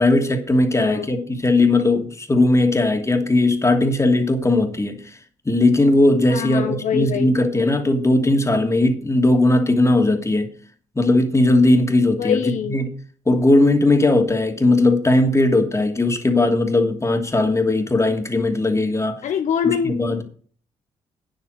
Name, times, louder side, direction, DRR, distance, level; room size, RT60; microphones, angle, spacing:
voice 1, 0.0-5.2 5.4-10.5 10.9-12.9 13.3-19.2 19.6-20.2, left 2 dB, 20° left, 2.8 m, -18 dB
voice 2, 0.8-1.1 6.3-7.3 12.2-12.8 19.2-20.2, left 8 dB, 60° left, 0.9 m, -24 dB
9.4 x 8.0 x 6.4 m
hypercardioid pair, 50°, 14 cm